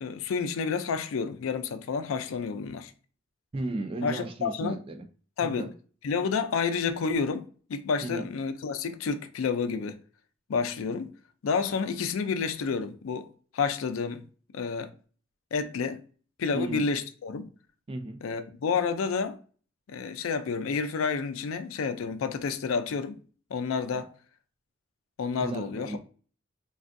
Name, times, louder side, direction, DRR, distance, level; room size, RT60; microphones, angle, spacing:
voice 1, 0.0-2.9 4.0-4.8 5.4-5.7 6.0-10.0 10.5-11.1 11.4-13.3 13.5-14.2 14.5-14.9 15.5-16.0 16.4-17.5 18.2-19.4 19.9-23.2 23.5-24.1 25.2-26.0, left 5 dB, 85° left, 0.4 m, -30 dB
voice 2, 3.5-5.1 5.4-5.7 8.0-8.3 16.5-16.8 17.9-18.2 23.9-24.0 25.4-26.0, right 2 dB, 30° right, 0.4 m, -35 dB
3.4 x 2.3 x 2.5 m
head